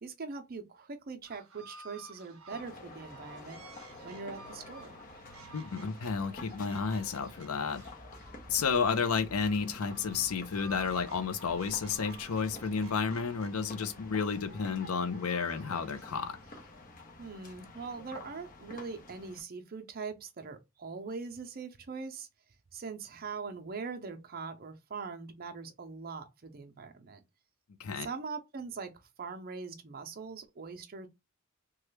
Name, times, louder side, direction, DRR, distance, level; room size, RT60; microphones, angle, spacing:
voice 1, 0.0-3.6 4.0-4.9 17.2-22.3 22.7-27.2 28.0-28.9 29.2-31.1, right 4 dB, 45° right, 0.6 m, -42 dB
sound 1, 1.2-16.8, right 4 dB, 75° right, 0.8 m, -54 dB
sound 2, 2.5-19.4, left 2 dB, 40° left, 0.7 m, -50 dB
sound 3, 3.5-15.3, equal, 5° left, 0.7 m, -58 dB
voice 2, 5.5-7.8 8.5-16.4 27.8-28.1, left 5 dB, 80° left, 0.5 m, -31 dB
3.0 x 2.3 x 3.2 m
head